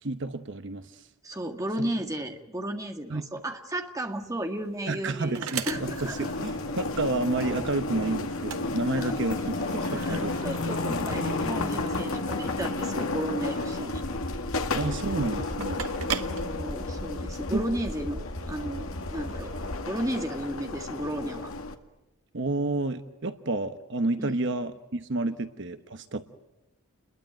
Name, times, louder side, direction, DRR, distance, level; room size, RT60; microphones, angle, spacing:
voice 1, 0.0-1.1 3.1-3.2 4.9-10.9 14.7-15.8 17.5-17.6 22.3-26.2, right 2 dB, 55° right, 9 dB, 1.0 m, -30 dB
voice 2, 1.2-6.3 9.0-9.1 9.8-14.0 16.1-19.5 19.8-21.5 24.2-24.4 25.3-25.4, right 1 dB, 15° right, 4 dB, 2.0 m, -34 dB
sound 1, 4.1-17.4, right 6 dB, 75° right, 1.5 m, -40 dB
sound 2, 5.7-21.7, left 2 dB, 70° left, 1.9 m, -32 dB
sound 3, 13.9-19.8, left 1 dB, 50° left, 3.6 m, -37 dB
29.5 x 22.0 x 9.2 m, 0.97 s
head